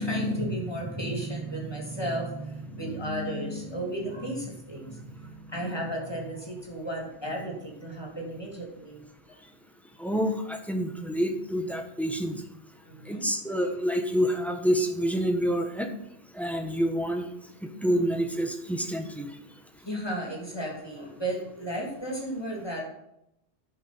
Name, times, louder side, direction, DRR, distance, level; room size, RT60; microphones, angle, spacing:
voice 1, 0.0-9.0 9.3-9.4 12.8-13.2 19.8-22.8, equal, 20° left, -1 dB, 2.8 m, -33 dB
voice 2, 10.0-12.4 13.1-15.9 16.3-17.3 17.6-19.3, equal, ahead, 5 dB, 1.0 m, -27 dB
11.0 x 5.6 x 6.0 m, 0.81 s
omnidirectional pair, 1.1 m